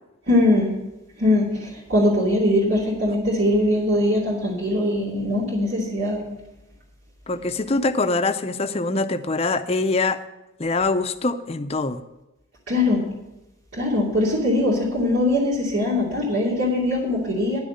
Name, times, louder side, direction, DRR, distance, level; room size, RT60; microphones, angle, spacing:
voice 1, 0.3-0.7 1.2-6.2 12.7-13.0 13.7-17.6, left 1 dB, 70° right, -6 dB, 2.7 m, -21 dB
voice 2, 7.3-10.2 10.6-12.0, left 3 dB, 30° left, 9 dB, 0.5 m, -23 dB
10.5 x 6.4 x 7.7 m, 0.96 s
head